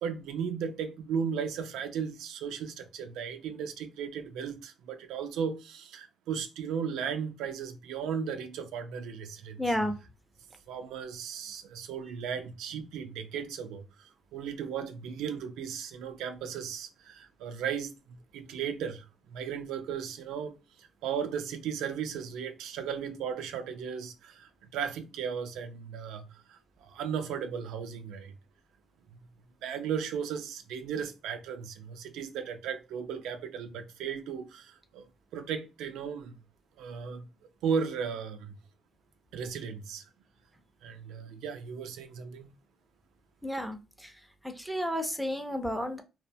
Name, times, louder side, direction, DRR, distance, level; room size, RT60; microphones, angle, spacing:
voice 1, 0.0-9.7 10.7-17.9 18.3-28.3 29.6-35.0 35.3-36.4 36.8-37.3 37.6-38.6 39.3-40.0 40.8-42.5, right 7 dB, 90° right, 0.4 m, -36 dB
voice 2, 9.6-9.9 43.4-43.8 44.6-46.0, equal, ahead, 0.5 m, -31 dB
2.8 x 2.0 x 2.6 m
cardioid pair, 90°, 0 cm